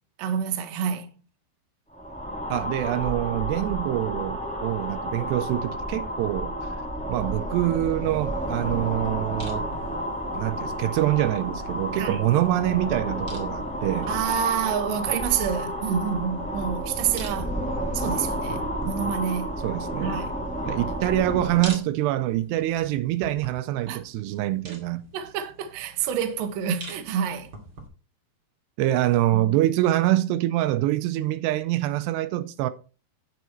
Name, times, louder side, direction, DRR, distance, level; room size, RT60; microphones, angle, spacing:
voice 1, 0.2-1.1 12.0-12.3 14.1-17.5 17.9-19.5 20.0-20.3 23.9-24.0 24.7-24.8 25.1-27.5 29.3-29.7, right 8 dB, 70° right, 2.5 m, -28 dB
sound 1, 1.9-21.8, equal, 5° left, 0.7 m, -31 dB
voice 2, 2.5-6.6 7.1-9.7 10.3-14.1 19.6-20.2 20.7-25.0 28.8-32.7, right 14 dB, 85° right, 2.7 m, -25 dB
sound 2, 8.3-27.9, right 2 dB, 35° right, 2.5 m, -45 dB
9.2 x 7.3 x 4.5 m
omnidirectional pair, 4.7 m